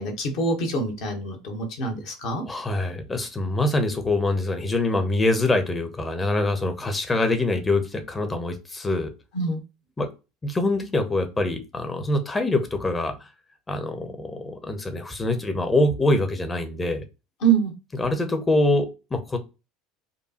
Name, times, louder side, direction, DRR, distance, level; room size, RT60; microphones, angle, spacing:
voice 1, 0.0-2.4 9.3-9.6 17.4-17.7, right 4 dB, 55° left, 2 dB, 1.2 m, -25 dB
voice 2, 2.5-9.1 10.0-10.1 10.4-13.1 13.7-17.0 18.0-19.4, left 2 dB, 20° left, 6 dB, 0.9 m, -24 dB
5.2 x 2.3 x 2.8 m, 0.28 s
figure-of-eight pair, 70°, 0 cm